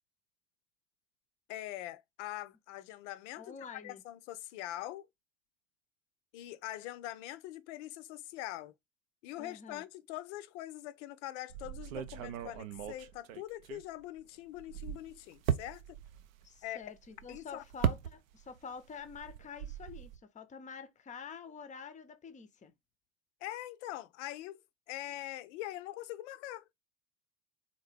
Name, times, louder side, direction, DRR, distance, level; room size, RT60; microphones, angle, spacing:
voice 1, 1.5-3.6 3.8-5.1 6.3-8.7 9.2-16.0 16.6-16.8 17.3-17.6 23.4-24.6 24.9-26.6, left 14 dB, 60° left, 0.5 m, -43 dB
voice 2, 3.3-4.0 9.4-9.8 16.4-22.7, left 6 dB, 20° left, 0.6 m, -47 dB
sound 1, 11.5-14.2 14.5-18.6 18.9-20.2, right 9 dB, 80° right, 0.5 m, -38 dB
3.6 x 2.6 x 3.2 m
figure-of-eight pair, 70°, 41 cm